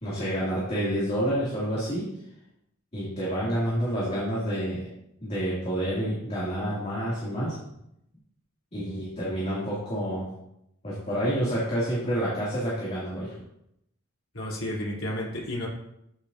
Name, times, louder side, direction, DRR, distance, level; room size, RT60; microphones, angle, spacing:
voice 1, 0.0-2.1 2.9-4.9 5.2-7.6 8.7-10.3 10.8-13.3, equal, 30° left, -8 dB, 2.7 m, -28 dB
voice 2, 14.3-15.7, left 1 dB, 70° left, -5 dB, 3.4 m, -32 dB
13.0 x 7.1 x 2.7 m, 0.80 s
head